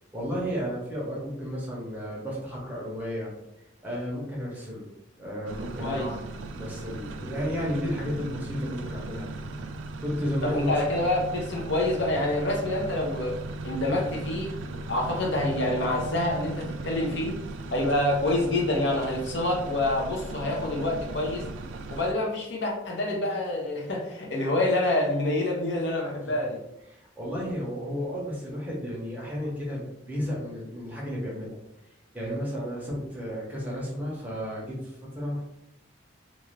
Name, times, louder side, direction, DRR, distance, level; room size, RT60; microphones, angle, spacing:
voice 1, 0.1-3.3 3.8-4.9 5.2-6.2 6.5-9.5 10.0-11.1 26.3-26.4 26.9-31.6 32.1-35.5, equal, 10° right, -5 dB, 0.8 m, -33 dB
sound 1, 5.5-22.1, right 2 dB, 80° right, 0.3 m, -38 dB
voice 2, 10.4-13.4 13.6-14.5 14.9-17.4 17.7-21.5 21.9-26.6, left 1 dB, 65° left, 0 dB, 0.7 m, -27 dB
2.6 x 2.3 x 3.1 m, 0.86 s
head